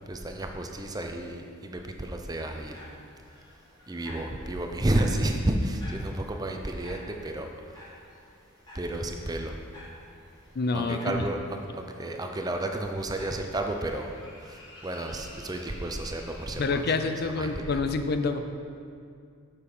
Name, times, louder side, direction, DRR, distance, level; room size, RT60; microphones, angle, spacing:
voice 1, 0.0-2.8 3.9-8.0 8.7-9.6 10.7-14.1 14.4-16.8 17.2-17.8, right 1 dB, 15° right, 4 dB, 0.5 m, -31 dB
sound 1, 2.5-17.6, left 1 dB, 20° left, 2.2 m, -51 dB
voice 2, 10.5-11.2 16.6-18.4, left 3 dB, 45° left, 7 dB, 0.5 m, -27 dB
8.5 x 6.7 x 5.4 m, 2.3 s
head